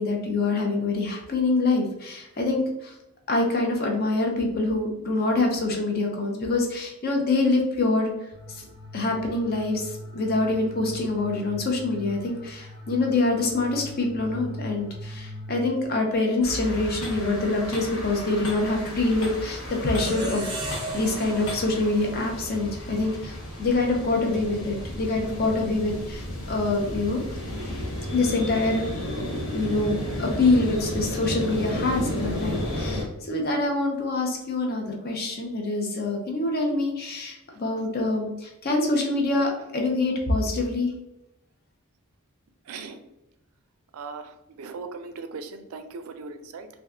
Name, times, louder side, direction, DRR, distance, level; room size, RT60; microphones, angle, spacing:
voice 1, 0.0-2.9 3.3-8.1 8.5-8.7 8.9-27.2 28.1-40.9, left 2 dB, 45° left, 1 dB, 0.6 m, -25 dB
sound 1, 8.3-15.7, equal, 5° left, 0.9 m, -40 dB
sound 2, 16.4-33.0, left 1 dB, 65° left, 0.9 m, -33 dB
sound 3, 20.0-23.2, right 1 dB, 20° right, 0.5 m, -36 dB
voice 2, 42.6-43.0 43.9-46.7, right 4 dB, 75° right, 8 dB, 0.4 m, -39 dB
3.6 x 2.6 x 2.3 m, 0.90 s
head